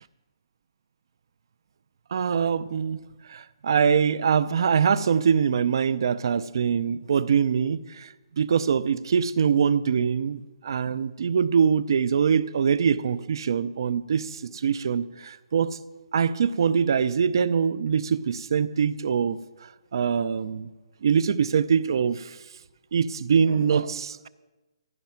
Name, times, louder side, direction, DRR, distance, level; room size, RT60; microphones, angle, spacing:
voice 1, 2.1-3.0 3.3-8.1 8.4-15.8 16.1-19.4 19.9-20.7 21.0-22.4 22.9-24.3, right 6 dB, 50° right, 17 dB, 0.6 m, -23 dB
15.0 x 11.5 x 5.8 m, 1.1 s
hypercardioid pair, 170°, 3 cm